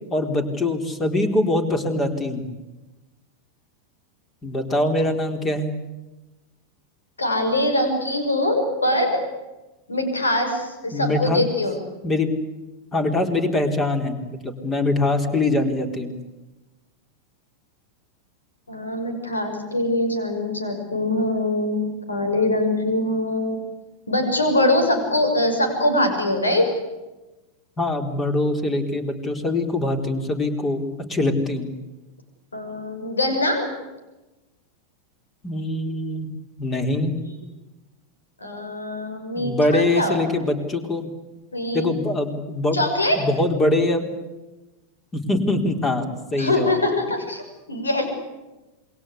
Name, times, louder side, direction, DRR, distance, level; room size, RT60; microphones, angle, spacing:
voice 1, 0.1-2.4 4.4-5.8 10.9-11.4 12.0-12.3 12.9-14.2 14.4-16.1 27.8-30.8 31.1-31.7 35.4-36.3 36.6-37.2 39.4-41.1 41.7-42.8 43.2-44.0 45.1-46.7, left 2 dB, 20° left, 6 dB, 4.1 m, -23 dB
voice 2, 7.2-9.2 9.9-11.8 18.7-23.6 24.1-26.7 32.5-33.7 37.2-37.3 38.4-40.4 41.5-41.9 42.7-43.2 46.4-47.4 47.7-48.1, left 1 dB, 75° left, 6 dB, 6.1 m, -23 dB
27.5 x 22.5 x 8.5 m, 1.1 s
figure-of-eight pair, 90°, 0 cm